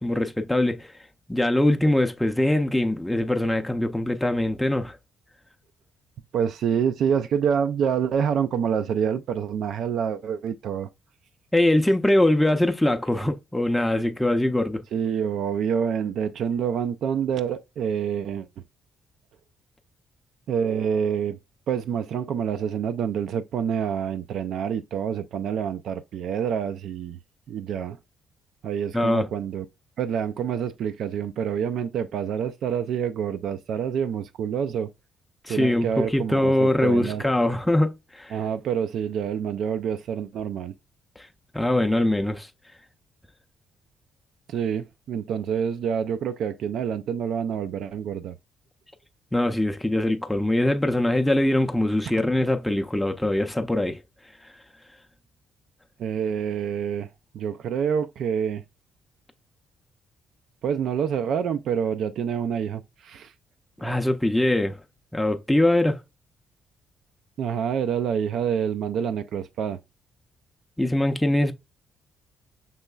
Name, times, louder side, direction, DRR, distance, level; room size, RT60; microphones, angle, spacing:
voice 1, 0.0-0.9 1.3-5.0 11.5-14.8 28.9-29.3 35.4-38.4 41.5-42.5 49.3-54.0 63.8-64.8 65.1-66.0 70.8-71.5, left 1 dB, 5° left, 0.5 m, -22 dB
voice 2, 6.3-10.9 14.9-18.5 20.5-21.4 21.7-27.2 27.5-28.0 28.6-29.7 30.0-34.9 35.5-37.2 38.3-40.7 44.5-48.3 56.0-57.1 57.3-58.6 60.6-63.3 67.4-69.8, right 7 dB, 70° right, 0.3 m, -27 dB
5.5 x 3.0 x 2.2 m
cardioid pair, 90°, 0 cm